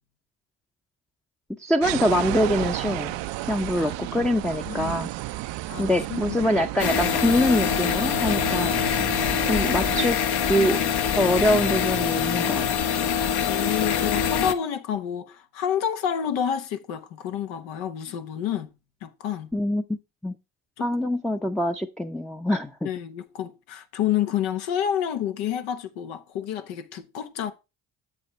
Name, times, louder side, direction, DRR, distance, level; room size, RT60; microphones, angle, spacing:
voice 1, 1.6-3.2 3.5-5.1 5.8-9.0 9.4-10.2 10.5-10.8 11.2-12.6 19.5-19.8 20.2-20.4 20.8-22.9, left 1 dB, ahead, 0.6 m, -24 dB
sound 1, 1.8-10.1, right 17 dB, 70° right, 0.6 m, -32 dB
voice 2, 5.7-6.4 10.4-10.8 13.5-18.7 19.0-19.5 20.8-20.9 22.8-27.5, left 9 dB, 80° left, 1.1 m, -29 dB
sound 2, 6.8-14.5, left 8 dB, 55° left, 1.0 m, -24 dB
7.9 x 7.7 x 3.1 m
supercardioid pair, 60°, 46 cm